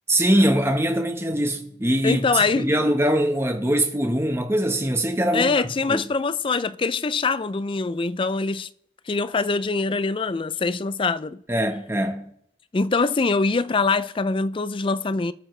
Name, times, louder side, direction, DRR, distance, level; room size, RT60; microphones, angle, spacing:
voice 1, 0.1-5.5 5.9-6.0 11.5-12.2, right 1 dB, 15° right, 1.2 m, -22 dB
voice 2, 2.0-2.7 5.3-8.7 9.1-11.4 12.7-15.3, left 4 dB, 30° left, 0.4 m, -23 dB
25.5 x 8.8 x 3.3 m
head